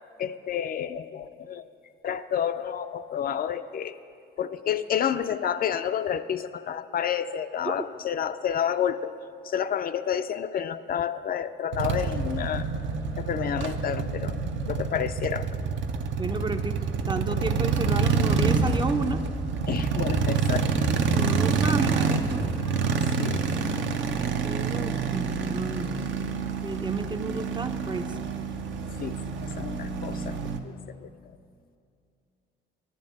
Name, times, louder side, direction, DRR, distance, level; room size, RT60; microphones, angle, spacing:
voice 1, 0.2-1.6 2.0-3.9 4.4-9.1 9.4-12.7 13.2-14.4 14.7-15.5 19.7-20.7 22.3-22.5 23.2-23.4 23.7-23.8 29.0-29.1 29.6-30.4 30.6-30.8 31.0-31.4, left 9 dB, 50° left, 10 dB, 0.4 m, -29 dB
sound 1, 11.7-30.6, right 5 dB, 70° right, 0.7 m, -27 dB
voice 2, 16.2-16.8 17.1-19.2 21.1-22.4 24.1-25.9 26.6-28.1, right 3 dB, 25° right, 9 dB, 0.5 m, -32 dB
10.5 x 5.3 x 8.5 m, 2.4 s
cardioid pair, 90°, 20 cm